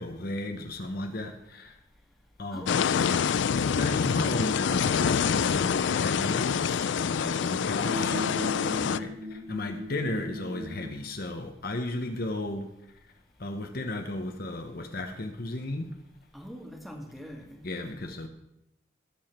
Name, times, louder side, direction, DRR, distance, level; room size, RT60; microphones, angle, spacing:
voice 1, 0.0-1.8 2.4-2.9 3.5-8.2 8.6-12.7 13.4-16.0 17.6-18.3, left 2 dB, 50° left, 1.0 m, -34 dB
voice 2, 2.5-3.8 16.3-17.6, equal, ahead, 1.8 m, -44 dB
sound 1, 2.7-9.0, left 7 dB, 65° left, 0.4 m, -26 dB
sound 2, 7.8-11.0, left 1 dB, 55° right, 2.8 m, -37 dB
20.0 x 7.2 x 4.4 m
head